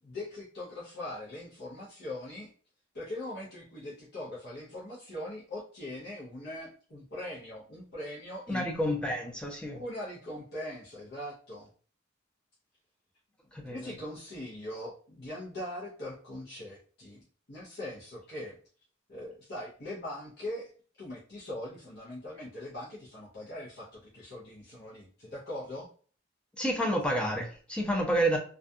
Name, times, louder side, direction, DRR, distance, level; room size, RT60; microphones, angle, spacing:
voice 1, 0.0-2.5 2.9-8.7 9.7-11.7 13.7-17.2 17.5-18.6 19.1-25.9, left 1 dB, 55° left, -7 dB, 0.7 m, -41 dB
voice 2, 8.5-9.8 13.5-13.9 26.6-28.4, equal, 5° left, 0 dB, 0.5 m, -29 dB
2.4 x 2.2 x 2.6 m, 0.43 s
head